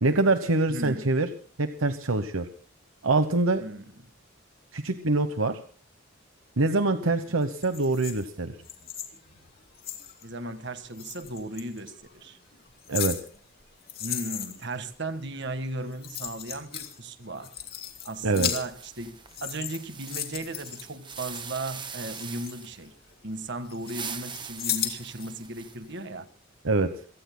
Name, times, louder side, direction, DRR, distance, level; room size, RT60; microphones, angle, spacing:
voice 1, 0.0-1.3 1.6-2.5 3.0-3.6 4.7-5.6 6.6-8.5 12.9-13.2 18.2-18.5 26.6-26.9, right 2 dB, 75° right, 9 dB, 1.0 m, -24 dB
voice 2, 0.7-1.1 3.6-3.9 10.2-12.4 14.0-17.5 18.0-22.9 23.2-26.3, right 2 dB, 55° right, 10 dB, 1.6 m, -36 dB
sound 1, 7.4-10.3 10.9-11.9 12.5-14.7 15.6-15.7 15.9-17.0 17.3-19.0 19.3-21.4 21.8-23.3 23.7-25.3 25.7-25.8, left 10 dB, 45° left, 2.6 m, -36 dB
sound 2, 18.6-22.8 23.6-26.0, right 7 dB, 20° right, 1.1 m, -42 dB
28.0 x 18.0 x 2.2 m, 0.43 s
head